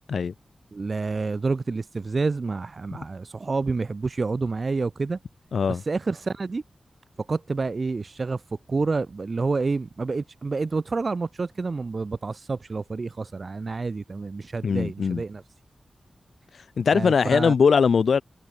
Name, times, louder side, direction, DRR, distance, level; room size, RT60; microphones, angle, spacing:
voice 1, 0.7-5.2 5.7-6.6 7.2-8.4 8.7-15.4 16.9-17.5, right 4 dB, 45° right, 1.0 m, -28 dB
voice 2, 5.5-5.8 14.6-15.2 16.5-18.2, left 6 dB, 85° left, 1.2 m, -21 dB
wide cardioid pair, 125°, 0 cm